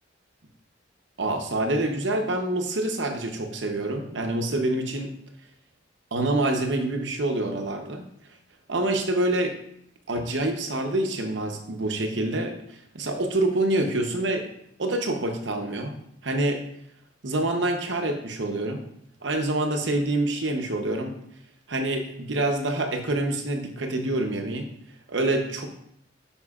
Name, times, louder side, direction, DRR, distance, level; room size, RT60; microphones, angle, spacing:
voice 1, 1.2-5.1 6.1-8.1 8.7-9.6 10.1-12.5 12.9-14.5 14.8-15.9 16.2-16.6 17.2-18.8 19.2-21.1 21.7-24.7 25.1-25.8, right 2 dB, 75° right, 5 dB, 0.9 m, -26 dB
9.8 x 5.3 x 2.4 m, 0.73 s
head